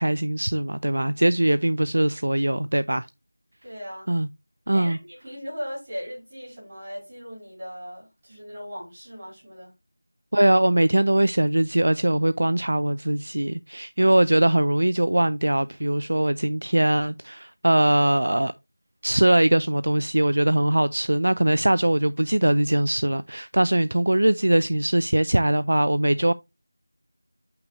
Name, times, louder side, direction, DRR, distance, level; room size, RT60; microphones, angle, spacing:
voice 1, 0.0-3.1 4.1-4.3 4.7-5.0 10.3-18.5 19.0-26.3, right 1 dB, 60° right, 0.5 m, -21 dB
voice 2, 3.6-4.1 4.7-9.7, equal, 20° right, 4.6 m, -38 dB
8.9 x 5.9 x 3.2 m
figure-of-eight pair, 180°, 0 cm